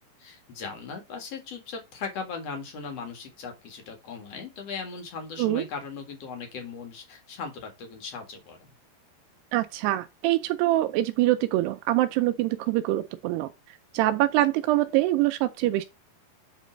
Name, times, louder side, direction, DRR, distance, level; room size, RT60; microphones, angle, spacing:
voice 1, 0.2-8.7, left 5 dB, 50° left, 2.2 m, -38 dB
voice 2, 9.5-13.5 13.9-15.8, right 16 dB, 85° right, 2.5 m, -24 dB
8.3 x 3.8 x 5.1 m
omnidirectional pair, 4.9 m